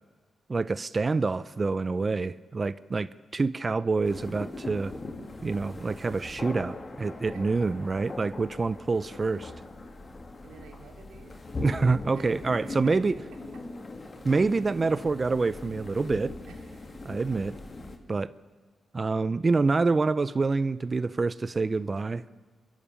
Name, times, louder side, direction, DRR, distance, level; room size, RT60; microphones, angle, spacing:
voice 1, 0.5-4.9 5.4-9.5 11.6-13.2 14.2-16.3 17.0-17.5 18.1-18.3 18.9-22.2, right 3 dB, 35° right, 16 dB, 0.5 m, -27 dB
sound 1, 4.0-18.0, left 2 dB, 35° left, 2.4 m, -40 dB
voice 2, 10.4-11.4 12.1-13.0 16.5-17.0, right 4 dB, 90° right, 2 dB, 3.2 m, -51 dB
27.0 x 11.5 x 8.7 m, 1.4 s
cardioid pair, 80°, 0 cm